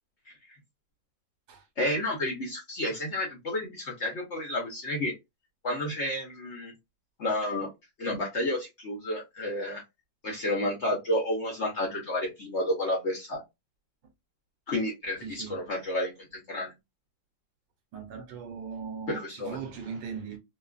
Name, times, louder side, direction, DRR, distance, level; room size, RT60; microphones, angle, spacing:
voice 1, 1.8-5.1 5.6-6.7 7.2-7.7 8.0-9.8 10.2-13.4 14.7-16.7 19.1-19.6, left 1 dB, 50° left, 0.8 m, -31 dB
voice 2, 15.2-15.6 17.9-20.4, right 6 dB, 75° right, 1.4 m, -39 dB
3.0 x 2.3 x 2.3 m
omnidirectional pair, 2.0 m